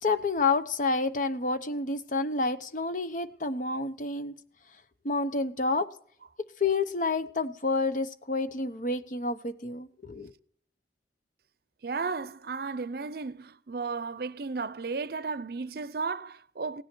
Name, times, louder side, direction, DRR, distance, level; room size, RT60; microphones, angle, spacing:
voice 1, 0.0-4.3 5.0-5.9 6.6-10.3, left 3 dB, 45° left, 0.9 m, -29 dB
voice 2, 11.8-16.8, right 4 dB, 60° right, 0.6 m, -34 dB
17.0 x 9.6 x 4.5 m
head